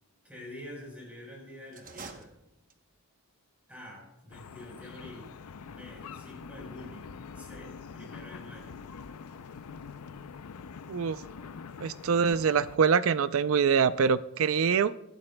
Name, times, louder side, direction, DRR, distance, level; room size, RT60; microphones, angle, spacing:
voice 1, 0.2-2.3 3.7-5.3 5.6-8.8, left 1 dB, 5° right, -2 dB, 4.2 m, -47 dB
sound 1, 1.7-3.1, right 4 dB, 35° right, 0.9 m, -47 dB
sound 2, 4.3-12.8, left 5 dB, 85° left, 0.5 m, -45 dB
voice 2, 10.9-11.2 11.8-15.0, right 6 dB, 65° right, 15 dB, 0.4 m, -25 dB
24.0 x 11.5 x 2.2 m, 0.85 s
head